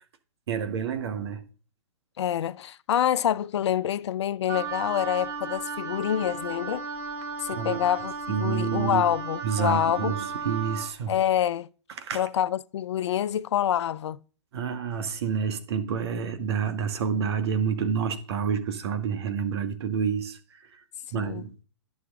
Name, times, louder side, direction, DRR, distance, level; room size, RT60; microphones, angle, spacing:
voice 1, 0.5-1.5 7.6-7.8 8.3-9.0 9.4-11.1 12.0-12.2 14.5-20.4 21.1-21.5, right 7 dB, 55° right, 1.4 m, -28 dB
voice 2, 2.2-6.8 7.4-10.1 11.1-11.7 12.1-14.2 21.1-21.5, left 10 dB, 65° left, 0.5 m, -26 dB
Wind instrument woodwind instrument, 4.5-10.9, right 5 dB, 30° right, 4.1 m, -35 dB
11.0 x 6.3 x 3.6 m
hypercardioid pair, 135°, 16 cm